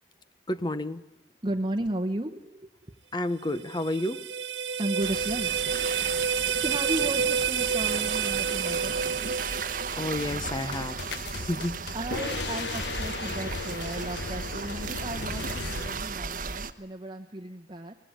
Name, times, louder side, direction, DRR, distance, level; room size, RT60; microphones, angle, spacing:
voice 1, 0.5-1.0 3.1-4.3 10.0-11.0 11.3-11.9, left 1 dB, 25° left, 13 dB, 0.9 m, -30 dB
voice 2, 1.4-2.7 4.8-5.5 6.3-9.0 11.9-17.9, right 1 dB, 25° right, 1 dB, 1.1 m, -34 dB
sound 1, 3.4-10.5, right 7 dB, 85° right, 1.0 m, -29 dB
sound 2, 5.0-16.7, right 5 dB, 50° right, 1.0 m, -36 dB
sound 3, 10.1-16.0, left 4 dB, 70° left, 1.0 m, -36 dB
24.0 x 19.0 x 9.0 m, 0.94 s
head